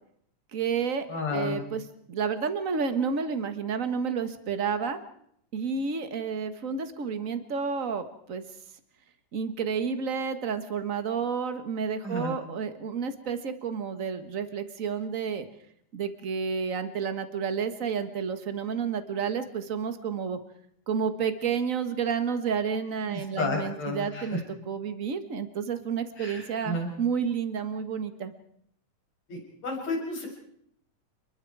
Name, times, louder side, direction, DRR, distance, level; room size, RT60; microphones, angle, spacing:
voice 1, 0.5-1.8 2.1-5.0 5.5-8.4 9.3-15.5 15.9-20.4 20.9-24.4 24.7-28.3, right 6 dB, 55° right, 9 dB, 0.8 m, -30 dB
voice 2, 1.1-1.6 12.0-12.3 23.1-24.4 26.2-26.9 29.3-30.3, left 2 dB, 55° left, 0 dB, 8.5 m, -32 dB
29.5 x 22.0 x 4.8 m, 0.71 s
omnidirectional pair, 3.7 m